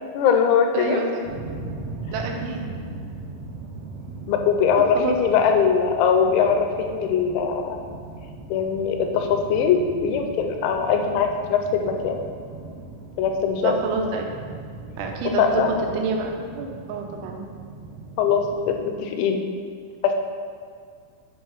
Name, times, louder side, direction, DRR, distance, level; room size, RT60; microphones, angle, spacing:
voice 1, 0.1-1.0 4.3-7.8 8.5-12.2 13.2-13.8 15.4-15.7 18.2-19.4 20.0-20.2, left 6 dB, 85° left, 4 dB, 3.0 m, -21 dB
voice 2, 0.7-1.1 2.1-2.6 5.0-5.5 13.6-14.3 15.0-17.5, right 3 dB, 90° right, 2 dB, 3.1 m, -28 dB
sound 1, 1.2-18.9, right 3 dB, 70° right, 3.4 m, -39 dB
6.9 x 5.5 x 5.5 m, 2.1 s
omnidirectional pair, 5.4 m